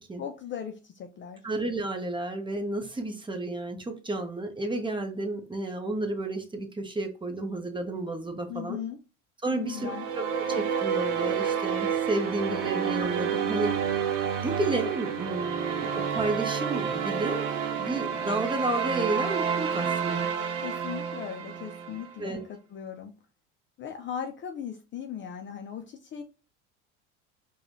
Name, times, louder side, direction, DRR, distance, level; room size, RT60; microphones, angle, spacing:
voice 1, 0.2-1.4 8.5-9.0 9.5-10.1 20.6-23.1 23.8-26.2, left 8 dB, 35° left, 0.4 m, -38 dB
voice 2, 1.4-8.8 9.4-9.9 10.5-13.8 14.4-20.3 22.2-22.4, right 2 dB, 15° right, 0.8 m, -31 dB
sound 1, 9.7-22.1, right 7 dB, 75° right, 0.8 m, -29 dB
4.7 x 2.3 x 2.6 m
supercardioid pair, 85°, 36 cm